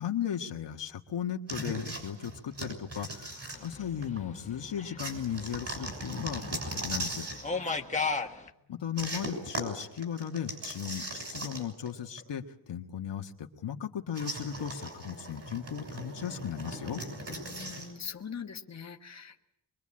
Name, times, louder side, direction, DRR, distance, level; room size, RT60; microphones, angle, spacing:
voice 1, 0.0-7.3 8.7-17.0, left 9 dB, 75° left, 4 dB, 1.6 m, -36 dB
sound 1, 1.5-4.2 5.0-7.5 9.0-11.9 12.2-12.3 14.1-17.9, right 1 dB, 35° right, 6.3 m, -39 dB
sound 2, 3.7-7.1 7.4-8.4, left 4 dB, 15° left, 1.5 m, -35 dB
voice 2, 7.5-8.3 17.3-19.4, left 7 dB, 40° left, 3 dB, 1.5 m, -43 dB
24.0 x 23.5 x 8.7 m, 0.81 s
wide cardioid pair, 145°, 43 cm